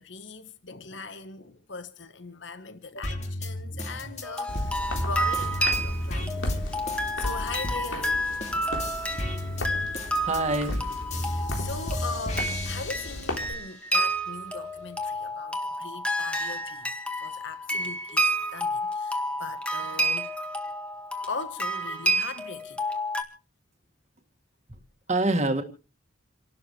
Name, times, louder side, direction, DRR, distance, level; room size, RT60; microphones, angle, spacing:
voice 1, 0.0-6.6 7.2-8.2 10.4-10.5 11.2-16.9 17.2-20.3 21.3-22.8, left 4 dB, 70° left, 1.3 m, -40 dB
sound 1, 3.0-8.1 8.4-13.6 14.1-15.0, left 1 dB, 35° left, 2.5 m, -34 dB
sound 2, 4.2-23.2, right 1 dB, 5° left, 1.8 m, -30 dB
Walk footsteps, 4.5-13.5, left 1 dB, 85° left, 3.7 m, -36 dB
voice 2, 10.2-10.8 25.1-25.6, right 2 dB, 35° right, 2.0 m, -25 dB
29.5 x 12.5 x 3.2 m
head